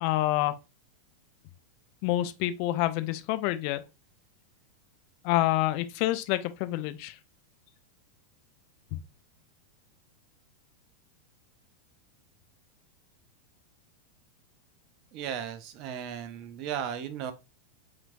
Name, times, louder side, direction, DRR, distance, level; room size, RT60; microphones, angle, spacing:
voice 1, 0.0-0.6 2.0-3.8 5.2-7.2 8.9-9.0, left 16 dB, 45° left, 0.4 m, -27 dB
voice 2, 15.1-17.3, right 8 dB, 40° right, 0.6 m, -35 dB
4.6 x 3.6 x 2.6 m
figure-of-eight pair, 90°, 0 cm